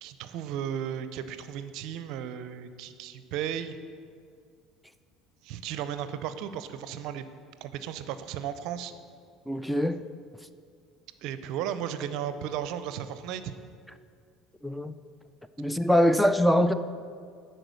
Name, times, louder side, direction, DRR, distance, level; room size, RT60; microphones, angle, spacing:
voice 1, 0.0-3.8 5.4-7.3 7.6-8.9 11.2-13.5, right 9 dB, 70° right, 11 dB, 0.5 m, -35 dB
voice 2, 9.5-10.0 14.6-14.9 15.6-16.7, equal, ahead, 11 dB, 0.4 m, -23 dB
11.0 x 4.5 x 6.8 m, 2.2 s
hypercardioid pair, 80°, 0 cm